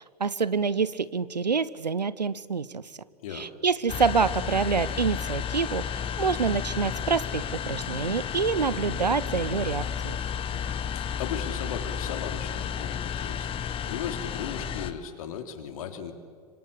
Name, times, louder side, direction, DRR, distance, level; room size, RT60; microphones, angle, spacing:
voice 1, 0.2-2.8 3.3-10.2, right 5 dB, 85° right, 19 dB, 0.9 m, -27 dB
sound 1, 3.9-14.9, left 8 dB, 25° left, 1.4 m, -32 dB
voice 2, 10.5-13.5 13.8-16.1, left 8 dB, 55° left, 7 dB, 3.1 m, -37 dB
26.0 x 24.5 x 8.2 m, 2.2 s
figure-of-eight pair, 100°, 21 cm